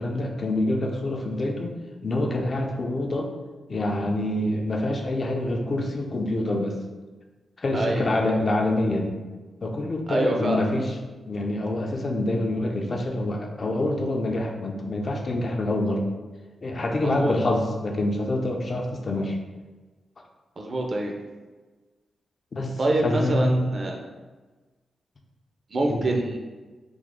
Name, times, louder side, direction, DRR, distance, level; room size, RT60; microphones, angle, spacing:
voice 1, 0.0-1.8 2.0-3.3 3.7-6.7 7.6-9.1 9.6-10.9 11.3-16.1 16.6-19.4 22.5-23.7 25.9-26.1, left 1 dB, 40° left, 2 dB, 0.4 m, -26 dB
voice 2, 7.7-8.1 10.1-10.6 17.0-17.3 20.6-21.1 22.8-24.0 25.7-26.4, right 2 dB, 45° right, 1 dB, 0.5 m, -25 dB
3.4 x 2.0 x 3.6 m, 1.3 s
cardioid pair, 105°, 0 cm